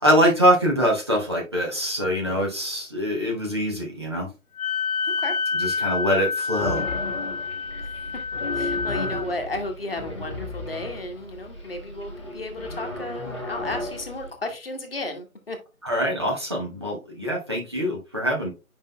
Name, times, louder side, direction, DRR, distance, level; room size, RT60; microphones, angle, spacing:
voice 1, 0.0-4.3 5.5-6.9 15.8-18.5, equal, 20° right, 0.9 m, -23 dB
Wind instrument woodwind instrument, 4.6-9.3, left 5 dB, 85° left, 0.6 m, -28 dB
sound 1, 6.6-14.3, left 2 dB, 20° left, 1.0 m, -34 dB
voice 2, 8.5-15.6, left 2 dB, 45° left, 1.2 m, -33 dB
8.1 x 5.3 x 2.2 m
figure-of-eight pair, 160°, 42 cm